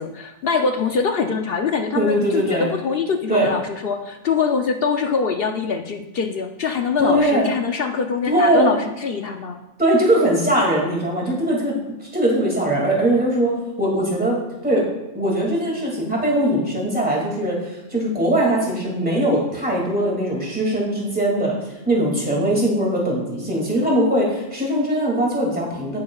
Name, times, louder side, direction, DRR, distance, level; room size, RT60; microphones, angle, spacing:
voice 1, 0.0-9.6, left 5 dB, 60° left, 5 dB, 0.8 m, -23 dB
voice 2, 2.0-2.7 3.3-3.5 7.0-7.5 8.3-8.8 9.8-11.8 12.0-13.5 13.8-14.4 14.6-14.9 15.1-21.5 21.9-26.0, right 1 dB, 10° right, -3 dB, 2.3 m, -20 dB
17.0 x 6.4 x 2.4 m, 1.0 s
omnidirectional pair, 1.2 m